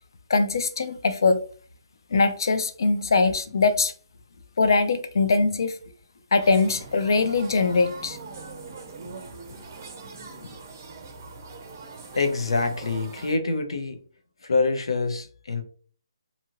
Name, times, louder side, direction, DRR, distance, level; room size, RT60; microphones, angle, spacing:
voice 1, 0.3-1.4 2.1-3.9 4.6-5.8 6.3-8.2, left 4 dB, 55° left, 0.4 m, -22 dB
sound 1, 6.4-13.4, right 4 dB, 30° right, 0.5 m, -42 dB
voice 2, 12.1-14.0 14.4-15.6, left 3 dB, 85° left, 0.7 m, -25 dB
2.7 x 2.5 x 2.9 m
hypercardioid pair, 175°, 3 cm